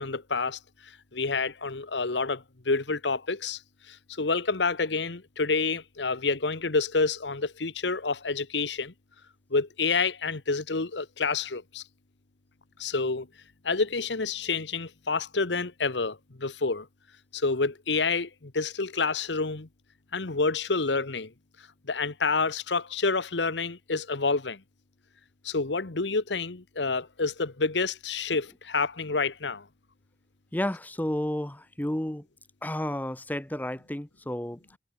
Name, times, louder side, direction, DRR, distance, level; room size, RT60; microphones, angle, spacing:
voice 1, 0.0-3.6 3.9-8.9 9.5-11.8 12.8-13.3 13.6-16.9 17.3-19.7 20.1-21.3 21.8-24.6 25.4-29.7, left 4 dB, 85° left, 1.3 m, -28 dB
voice 2, 30.5-32.3 32.6-34.8, left 1 dB, 10° left, 0.8 m, -31 dB
head